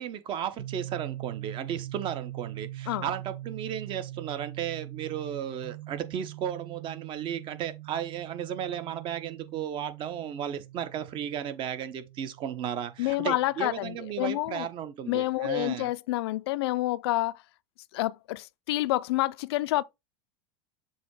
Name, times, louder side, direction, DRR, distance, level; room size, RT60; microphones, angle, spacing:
voice 1, 0.0-15.9, right 9 dB, 40° right, 1.0 m, -34 dB
sound 1, 0.6-14.2, right 15 dB, 75° right, 0.8 m, -43 dB
voice 2, 13.0-14.7 15.1-17.4 17.9-19.8, left 17 dB, 80° left, 0.4 m, -28 dB
7.0 x 2.9 x 4.8 m
supercardioid pair, 130°, 13 cm